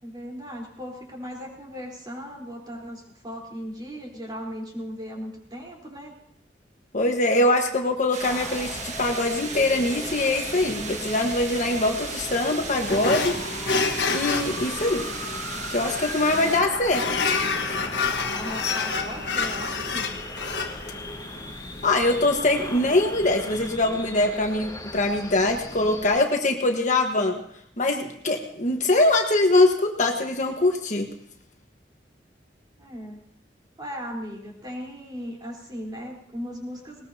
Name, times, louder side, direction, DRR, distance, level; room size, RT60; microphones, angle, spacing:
voice 1, 0.0-6.2 16.2-16.8 18.3-20.2 32.8-33.2 33.8-37.1, equal, 25° right, -1 dB, 4.0 m, -37 dB
voice 2, 6.9-13.4 14.1-15.0 15.7-17.0 17.7-17.8 21.8-27.4 27.8-31.1, left 2 dB, 45° left, 3 dB, 1.4 m, -23 dB
sound 1, 8.1-16.6, right 4 dB, 40° right, 1.6 m, -36 dB
sound 2, 8.2-26.2, left 1 dB, 20° left, 5.9 m, -38 dB
sound 3, 12.9-23.7, left 4 dB, 80° left, 1.3 m, -29 dB
20.0 x 19.5 x 2.8 m, 0.73 s
head